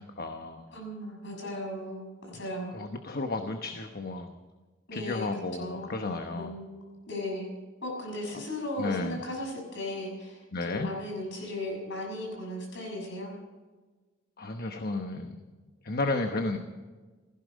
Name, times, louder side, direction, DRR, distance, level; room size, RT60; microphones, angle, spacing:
voice 1, 0.0-0.7 2.7-4.3 4.9-6.5 8.8-9.2 10.5-10.9 14.4-15.5 15.8-16.6, left 2 dB, 50° left, 5 dB, 1.1 m, -33 dB
voice 2, 0.7-2.8 4.9-5.3 5.6-6.1 6.3-6.8 7.1-7.5 7.8-13.3, left 1 dB, 65° left, 0 dB, 6.6 m, -36 dB
17.5 x 15.5 x 5.3 m, 1.3 s
head